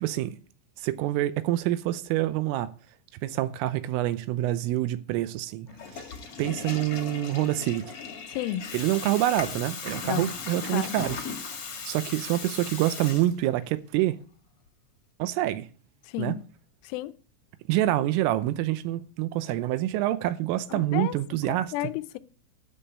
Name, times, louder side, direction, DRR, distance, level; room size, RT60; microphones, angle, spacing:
voice 1, 0.0-0.4 0.8-2.7 3.2-5.7 6.4-7.9 8.7-11.2 11.9-14.2 15.2-15.7 16.2-16.4 17.7-21.7, right 14 dB, 80° right, 3.3 m, -26 dB
Water tap faucet / Toilet flush, 5.7-13.7, left 5 dB, 50° left, 1.8 m, -37 dB
voice 2, 8.3-8.7 10.0-10.3 10.7-11.0 16.1-16.4 16.8-17.1 20.7-21.2 21.5-22.2, left 14 dB, 80° left, 3.1 m, -32 dB
13.0 x 5.5 x 8.5 m
omnidirectional pair, 6.0 m